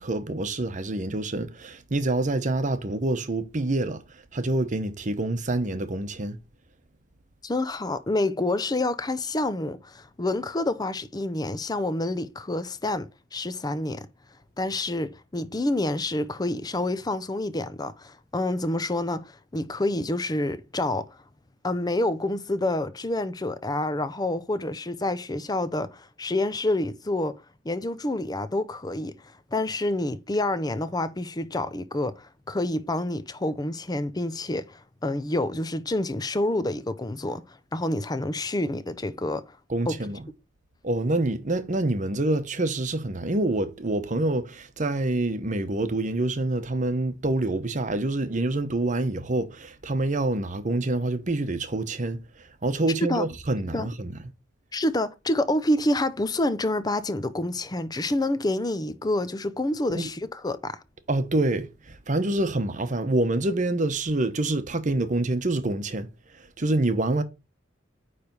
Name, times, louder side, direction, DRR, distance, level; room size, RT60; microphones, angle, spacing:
voice 1, 0.0-4.0 4.3-6.4 39.7-40.3 40.8-52.2 52.6-54.1 59.9-60.1 61.1-66.1 66.3-67.2, right 2 dB, 40° right, 0.9 m, -26 dB
voice 2, 7.4-14.1 14.6-21.2 21.6-39.6 39.9-40.0 53.0-53.3 53.7-53.9 54.7-60.8, left 1 dB, 20° left, 0.6 m, -28 dB
9.1 x 3.4 x 5.3 m
head